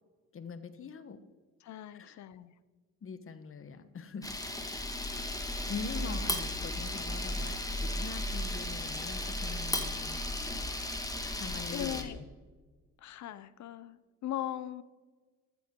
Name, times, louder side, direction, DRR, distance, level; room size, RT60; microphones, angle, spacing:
voice 1, 0.3-1.2 1.9-2.2 3.0-4.3 5.1-5.3 5.7-10.2 11.4-12.3, left 5 dB, 45° left, 12 dB, 1.2 m, -43 dB
voice 2, 1.6-2.5 11.6-12.2 13.0-14.8, left 11 dB, 65° left, 16 dB, 0.8 m, -39 dB
Camera, 4.2-12.0, left 1 dB, 10° left, 1.8 m, -35 dB
15.0 x 12.5 x 3.8 m, 1.4 s
cardioid pair, 90°, 30 cm